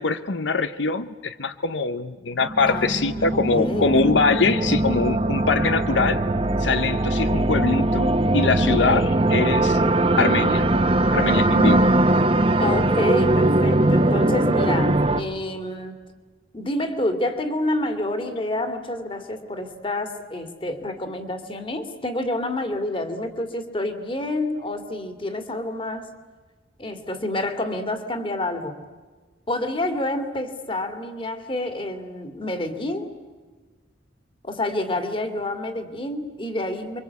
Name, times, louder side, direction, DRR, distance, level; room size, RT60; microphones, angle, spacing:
voice 1, 0.0-6.2 6.6-9.8 10.2-10.7 11.1-11.8, left 4 dB, 90° left, 12 dB, 0.9 m, -23 dB
sound 1, 2.4-15.2, right 1 dB, 30° right, 1.1 m, -20 dB
voice 2, 2.7-3.9 12.6-16.0 16.5-26.1 26.8-28.8 29.5-33.1 34.4-37.0, left 1 dB, 30° left, 7 dB, 2.4 m, -28 dB
28.5 x 24.0 x 8.3 m, 1.4 s
head